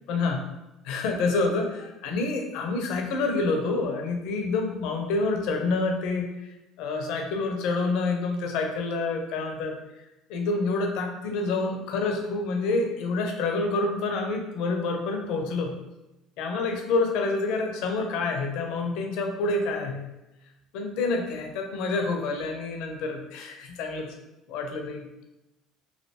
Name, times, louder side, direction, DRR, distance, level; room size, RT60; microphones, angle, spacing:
voice 1, 0.1-0.5 0.8-9.8 10.3-15.8 16.4-20.1 20.7-24.1 24.5-25.1, left 3 dB, 65° left, 3 dB, 0.6 m, -28 dB
3.2 x 2.6 x 2.9 m, 0.97 s
hypercardioid pair, 65°, 0 cm